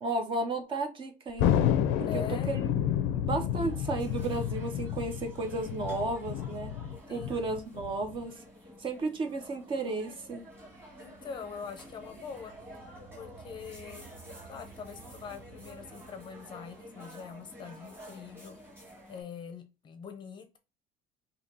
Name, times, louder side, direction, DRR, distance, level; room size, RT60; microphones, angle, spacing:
voice 1, 0.0-1.5 2.0-2.8 3.1-6.7 7.1-8.4 8.8-10.4, right 3 dB, 30° right, 0.6 m, -33 dB
Thunder, 1.4-8.2, left 10 dB, 80° left, 0.6 m, -30 dB
voice 2, 2.1-2.5 7.1-7.4 11.0-12.5 13.2-14.1 14.4-18.6 19.1-20.6, left 6 dB, 25° left, 0.6 m, -43 dB
sound 1, 3.6-19.2, equal, 15° right, 1.7 m, -51 dB
sound 2, 10.2-16.9, right 6 dB, 60° right, 1.2 m, -55 dB
5.5 x 2.8 x 2.7 m
cardioid pair, 170°, 18 cm